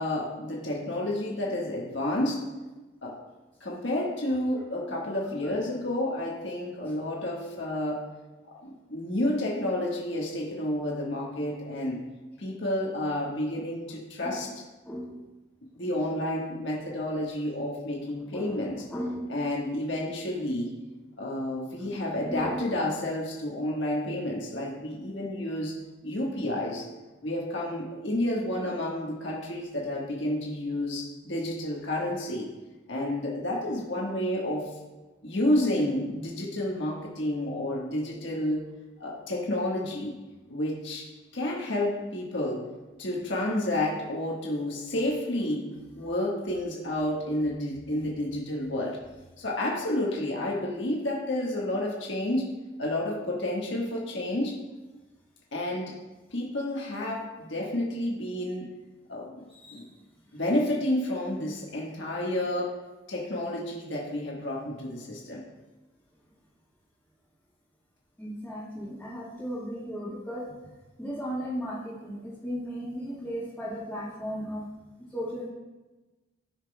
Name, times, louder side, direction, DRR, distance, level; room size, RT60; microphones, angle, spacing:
voice 1, 0.0-2.4 3.0-3.2 3.6-8.0 8.6-12.0 12.4-14.5 15.7-18.8 19.3-20.7 21.2-25.7 26.0-26.9 27.2-32.5 32.9-34.7 35.2-38.6 39.0-40.2 40.5-41.1 41.3-42.6 43.0-49.0 49.4-52.5 52.8-54.6 55.5-56.0 56.3-58.7 59.1-59.9 60.3-62.7 63.1-65.5, left 1 dB, 70° left, -2 dB, 1.4 m, -30 dB
voice 2, 14.8-15.2 18.0-18.6 18.9-19.3 21.8-21.9 22.3-22.7 59.5-59.9 68.2-70.5 71.0-74.6 75.1-75.5, equal, 5° left, -12 dB, 1.6 m, -36 dB
14.5 x 5.9 x 2.3 m, 1.2 s
head